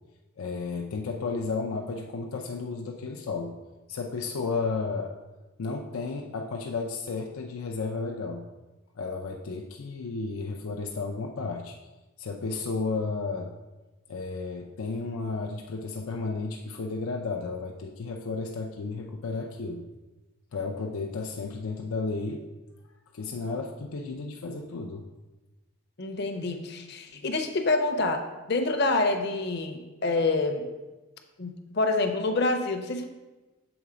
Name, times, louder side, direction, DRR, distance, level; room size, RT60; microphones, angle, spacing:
voice 1, 0.4-3.5 3.9-5.1 5.6-8.5 9.0-11.8 12.2-13.5 14.1-19.8 20.5-22.4 23.1-25.1, left 4 dB, 85° left, 1 dB, 0.5 m, -33 dB
voice 2, 26.0-30.6 31.4-33.1, left 3 dB, 50° left, 6 dB, 0.7 m, -27 dB
7.0 x 4.0 x 4.9 m, 1.1 s
head